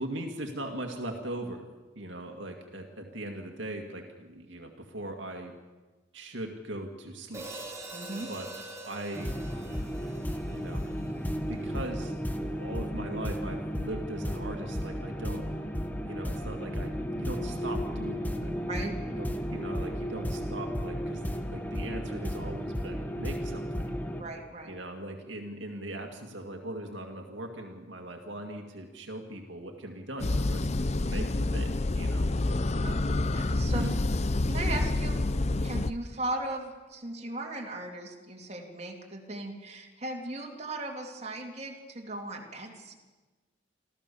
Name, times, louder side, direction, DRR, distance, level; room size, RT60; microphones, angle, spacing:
voice 1, 0.0-5.5 6.1-7.5 8.3-8.5 8.8-9.4 10.5-10.9 11.3-12.1 12.4-15.5 16.0-18.5 19.2-21.2 21.5-23.6 24.7-30.6 31.0-31.7 31.9-32.3 33.7-34.0, right 1 dB, 65° right, 3 dB, 2.2 m, -39 dB
Hi-hat, 7.3-11.6, right 2 dB, 15° right, 4.2 m, -44 dB
voice 2, 7.9-8.3 18.7-19.0 24.2-24.7 32.8-33.0 33.3-33.8 34.5-35.2 35.6-42.9, right 2 dB, 35° right, 1 dB, 2.8 m, -37 dB
sound 1, 9.2-24.2, equal, 10° left, 1.3 m, -34 dB
sound 2, 30.2-35.9, left 2 dB, 35° left, 0.6 m, -28 dB
26.5 x 15.0 x 7.1 m, 1.2 s
head